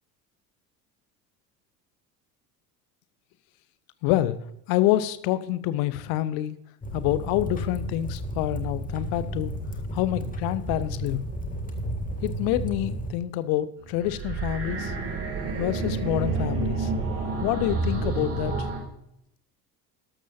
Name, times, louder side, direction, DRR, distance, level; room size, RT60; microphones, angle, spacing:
voice 1, 4.0-4.4 4.7-6.6 6.9-9.5 9.9-11.2 12.2-14.9 15.6-16.9 17.4-18.7, left 14 dB, 45° left, 15 dB, 0.9 m, -27 dB
sound 1, 6.8-13.1, right 1 dB, 15° left, 1.8 m, -33 dB
sound 2, 13.9-18.8, right 3 dB, 30° right, 3.0 m, -29 dB
12.5 x 12.5 x 2.7 m, 0.79 s
figure-of-eight pair, 65°, 50 cm